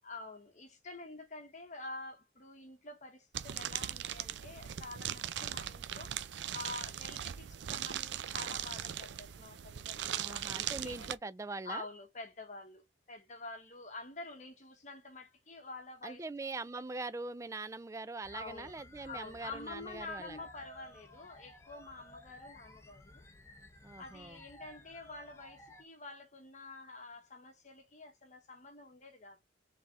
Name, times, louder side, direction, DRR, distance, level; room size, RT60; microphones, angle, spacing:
voice 1, 0.0-11.1 11.6-16.2 16.7-16.8 18.3-23.2 24.0-29.4, left 3 dB, 40° left, 1.0 m, -48 dB
sound 1, 3.3-11.1, right 10 dB, 85° right, 0.5 m, -39 dB
voice 2, 10.2-11.9 16.0-20.4 23.8-24.4, right 3 dB, 15° right, 0.3 m, -42 dB
sound 2, 18.2-25.8, left 1 dB, 15° left, 0.8 m, -56 dB
4.1 x 3.5 x 3.5 m
head